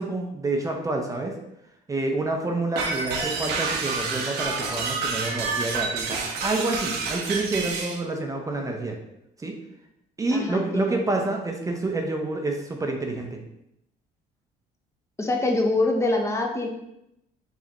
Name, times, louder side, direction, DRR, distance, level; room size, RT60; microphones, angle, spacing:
voice 1, 0.0-1.3 1.9-9.0 9.4-9.5 10.2-13.4, right 2 dB, 20° right, 2 dB, 0.6 m, -28 dB
sound 1, 2.8-8.0, right 4 dB, 80° right, 0.8 m, -28 dB
voice 2, 10.3-11.0 15.2-16.7, left 2 dB, 15° left, 3 dB, 0.7 m, -24 dB
4.9 x 3.2 x 2.9 m, 0.82 s
cardioid pair, 110°, 17 cm